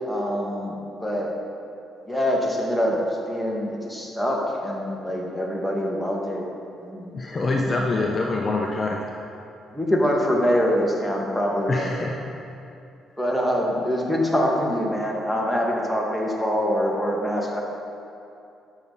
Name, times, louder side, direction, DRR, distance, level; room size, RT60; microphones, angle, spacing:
voice 1, 0.1-1.3 2.1-3.0 3.3-6.5 6.8-8.1 9.7-11.9 13.2-17.6, equal, 5° left, -2 dB, 2.1 m, -25 dB
voice 2, 7.1-9.0 11.7-12.2, left 3 dB, 40° left, 0 dB, 0.9 m, -25 dB
11.5 x 7.0 x 4.2 m, 2.7 s
hypercardioid pair, 55°, 0 cm